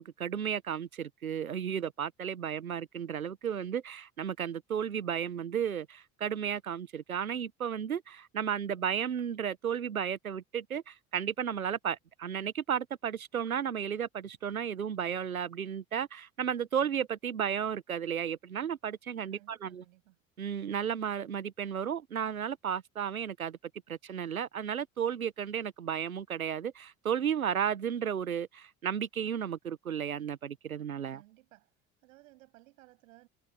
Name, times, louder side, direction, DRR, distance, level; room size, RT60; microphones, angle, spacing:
voice 1, 0.0-19.8 20.4-23.6 23.9-31.2, right 8 dB, 85° right, 1.0 m, -33 dB
voice 2, 19.3-20.2 31.1-31.7 32.0-33.3, right 18 dB, 70° right, 7.3 m, -59 dB
figure-of-eight pair, 60°, 41 cm